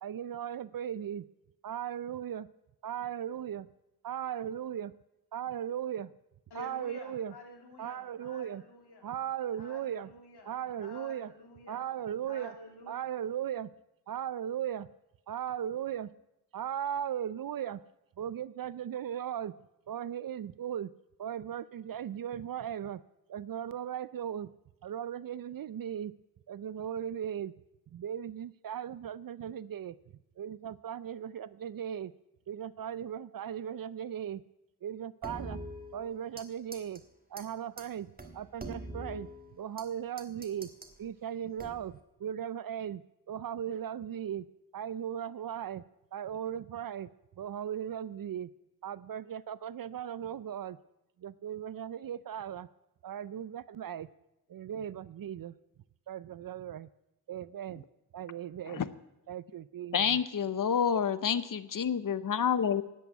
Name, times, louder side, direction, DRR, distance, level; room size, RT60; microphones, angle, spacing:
voice 1, 0.0-1.3 1.6-2.5 2.8-3.7 4.0-4.9 5.3-6.1 6.5-7.3 7.8-8.6 9.0-10.1 10.5-11.3 11.7-12.5 12.9-13.7 14.1-14.9 15.3-16.1 16.5-17.8 18.2-19.5 19.9-20.9 21.2-23.0 23.3-24.5 24.8-26.1 26.5-27.5 27.9-30.0 30.4-32.1 32.5-34.4 34.8-35.6 35.9-37.0 37.3-40.7 41.0-44.5 44.7-45.8 46.1-47.1 47.4-48.5 48.8-50.8 51.2-52.7 53.0-54.1 54.5-55.5 56.1-56.9 57.3-57.8 58.1-58.8 59.3-60.2, right 9 dB, 60° right, 18 dB, 0.5 m, -37 dB
voice 2, 6.5-9.1 9.5-10.5 10.8-11.8 12.3-12.9, left 2 dB, 75° left, 3 dB, 2.7 m, -50 dB
sound 1, 35.2-36.5 36.7-37.0 37.4-37.5 37.8-37.9 38.2-39.9 40.2-40.9 41.6-42.0, right 1 dB, 20° right, 1.8 m, -43 dB
voice 3, 59.9-62.8, left 7 dB, 55° left, 15 dB, 0.8 m, -28 dB
10.5 x 8.5 x 9.4 m, 0.89 s
cardioid pair, 65°, 40 cm